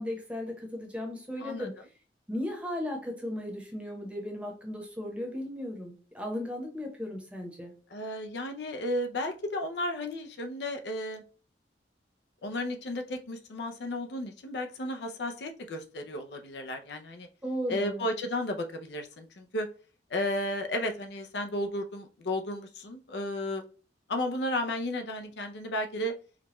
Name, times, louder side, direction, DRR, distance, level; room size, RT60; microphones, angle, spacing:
voice 1, 0.0-1.7 2.3-7.7 17.4-18.1, left 1 dB, 5° right, 1 dB, 0.9 m, -36 dB
voice 2, 7.9-11.2 12.4-17.3 17.7-19.7 20.1-23.6 24.1-26.1, left 1 dB, 70° left, 5 dB, 0.5 m, -33 dB
4.8 x 2.3 x 3.0 m, 0.38 s
head